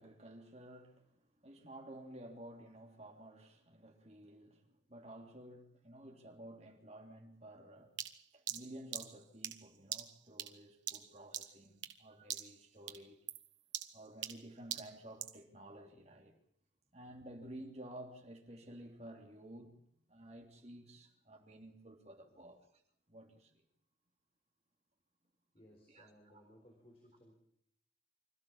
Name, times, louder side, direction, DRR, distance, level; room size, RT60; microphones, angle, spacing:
voice 1, 0.0-7.9 8.3-13.2 13.9-16.3 16.9-19.7 20.1-22.6 23.1-23.5 25.9-26.4, right 1 dB, 35° right, 3 dB, 3.1 m, -53 dB
sound 1, 8.0-12.0 12.3-12.6 12.9-15.4, right 11 dB, 85° right, 1.5 m, -44 dB
voice 2, 25.5-27.3, equal, 30° left, 1 dB, 4.4 m, -62 dB
25.5 x 15.0 x 7.2 m, 0.71 s
head